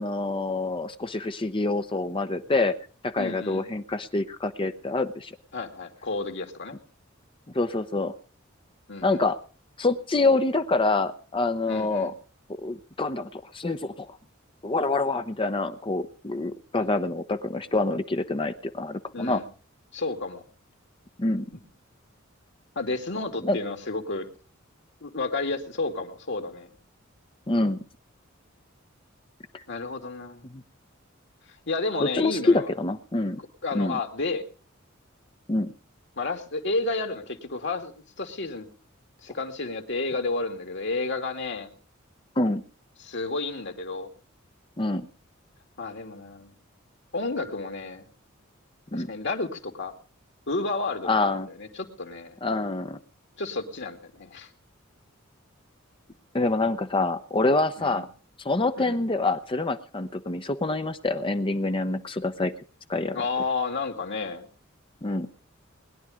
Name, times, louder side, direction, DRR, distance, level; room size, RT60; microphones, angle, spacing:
voice 1, 0.0-2.7 3.0-5.4 7.5-8.1 9.0-9.4 9.8-12.1 12.6-14.2 14.6-19.4 21.2-21.5 23.4-23.6 27.5-27.8 29.5-29.6 30.4-30.6 32.0-33.4 33.7-34.0 35.5-35.7 42.4-42.6 44.8-45.1 48.9-49.1 51.0-51.5 52.4-53.0 56.3-58.1 58.4-62.5 62.9-63.2 65.0-65.3, left 2 dB, 25° left, 9 dB, 0.8 m, -26 dB
voice 2, 3.2-3.6 5.5-6.8 8.9-9.2 11.7-12.1 16.8-17.0 19.1-19.5 19.9-20.4 22.8-24.3 25.0-26.7 29.7-30.4 31.7-32.7 33.6-34.4 36.2-38.7 39.2-41.7 43.0-44.1 45.8-46.5 47.1-48.0 48.9-49.9 50.5-51.1 51.4-52.4 53.4-54.5 57.8-58.0 58.8-59.0 63.1-64.5, left 3 dB, 60° left, 5 dB, 2.5 m, -31 dB
21.0 x 11.0 x 5.1 m, 0.40 s
head